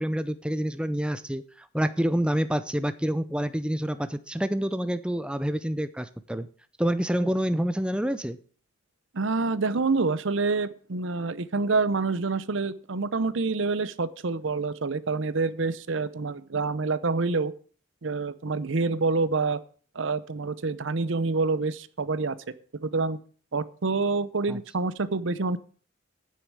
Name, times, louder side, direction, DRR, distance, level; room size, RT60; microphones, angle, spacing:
voice 1, 0.0-6.5 6.8-8.4 24.5-24.6, equal, 5° right, 0.5 m, -27 dB
voice 2, 9.1-17.5 18.0-19.6 19.9-22.6 22.8-23.2 23.5-25.6, right 3 dB, 65° right, 0.7 m, -27 dB
9.6 x 6.7 x 8.8 m
head